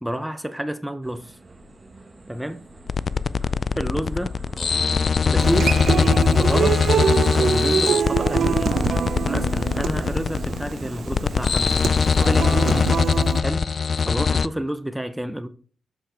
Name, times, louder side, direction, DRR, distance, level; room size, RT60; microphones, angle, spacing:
voice 1, 0.0-1.4 2.3-2.6 3.8-4.3 5.3-6.8 7.4-8.7 9.2-11.7 12.2-12.9 13.4-13.7 14.0-15.5, equal, 5° right, 0.7 m, -29 dB
sound 1, 1.0-12.6, right 2 dB, 30° right, 1.1 m, -38 dB
sound 2, 2.9-14.5, left 5 dB, 50° left, 0.3 m, -21 dB
Human voice / Acoustic guitar, 5.4-13.4, right 7 dB, 65° right, 0.5 m, -25 dB
7.0 x 6.2 x 3.3 m
supercardioid pair, 50°, 0 cm